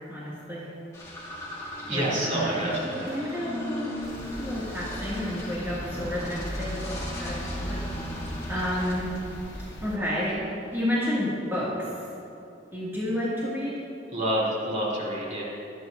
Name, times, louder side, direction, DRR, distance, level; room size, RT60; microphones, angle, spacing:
voice 1, 0.1-0.7 1.9-2.7 3.1-3.9 4.4-8.1 8.5-9.1 9.8-10.4 10.7-11.9 12.7-13.7, left 1 dB, 15° right, -10 dB, 2.2 m, -30 dB
sound 1, 0.9-10.5, left 1 dB, 20° left, 2.5 m, -38 dB
voice 2, 1.9-3.1 14.1-15.4, right 1 dB, 45° right, -6 dB, 3.2 m, -28 dB
sound 2, 4.0-10.0, equal, 70° left, 1.4 m, -38 dB
23.5 x 9.1 x 2.7 m, 2.7 s
head